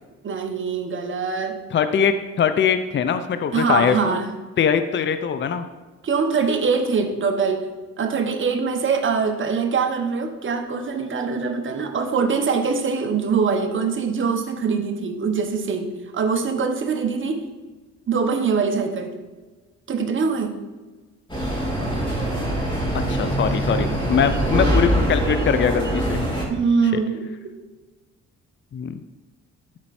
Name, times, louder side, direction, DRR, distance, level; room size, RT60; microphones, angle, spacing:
voice 1, 0.2-1.6 3.5-4.3 6.0-7.7 8.0-17.5 18.1-19.2 19.9-20.6 26.5-27.3, right 5 dB, 40° right, 5 dB, 1.2 m, -23 dB
voice 2, 1.7-4.2 4.6-5.6 22.9-26.2 28.7-29.0, left 7 dB, 40° left, 10 dB, 0.6 m, -22 dB
sound 1, 21.3-26.5, right 1 dB, 15° left, 2.8 m, -23 dB
12.0 x 4.5 x 4.3 m, 1.2 s
cardioid pair, 90°, 30 cm